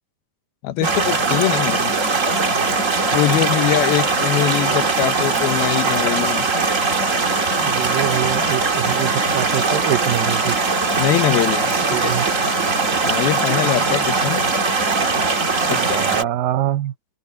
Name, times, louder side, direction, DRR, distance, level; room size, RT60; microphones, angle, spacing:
voice 1, 0.6-1.9 3.1-6.5 11.0-11.7 12.0-12.1 13.0-14.4 15.7-16.3, left 14 dB, 85° left, 2.9 m, -22 dB
sound 1, 0.8-16.2, right 3 dB, 30° right, 1.5 m, -20 dB
voice 2, 7.6-10.6 11.9-12.3 15.6-16.9, right 13 dB, 75° right, 2.4 m, -24 dB
open air
omnidirectional pair, 4.3 m